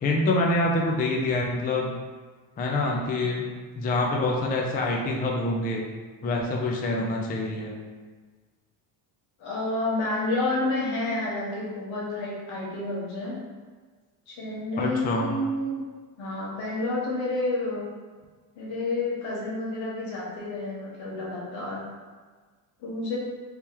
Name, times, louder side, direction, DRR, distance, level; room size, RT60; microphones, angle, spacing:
voice 1, 0.0-1.9 2.6-3.4 3.8-5.9 6.2-7.7 14.8-15.3, left 2 dB, 20° left, -1 dB, 0.4 m, -26 dB
voice 2, 9.4-13.4 14.3-15.8 16.2-17.9 18.5-21.9 22.8-23.2, left 2 dB, 75° left, -5 dB, 1.4 m, -29 dB
3.3 x 3.1 x 2.9 m, 1.4 s
cardioid pair, 105°, 47 cm